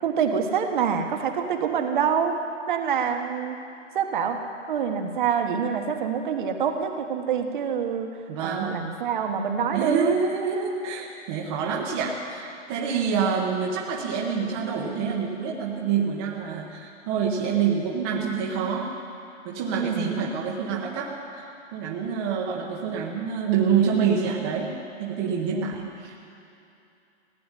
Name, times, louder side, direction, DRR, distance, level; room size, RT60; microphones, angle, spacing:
voice 1, 0.0-2.3 2.7-3.6 3.9-4.4 4.7-8.1 8.4-10.1 12.9-13.2 19.8-20.1 25.5-25.7, right 7 dB, 45° right, 4 dB, 1.3 m, -26 dB
voice 2, 8.3-8.8 9.7-18.9 19.4-24.7 25.0-26.1, right 6 dB, 20° right, -2 dB, 1.0 m, -27 dB
16.5 x 8.8 x 9.9 m, 2.7 s
hypercardioid pair, 170°, 36 cm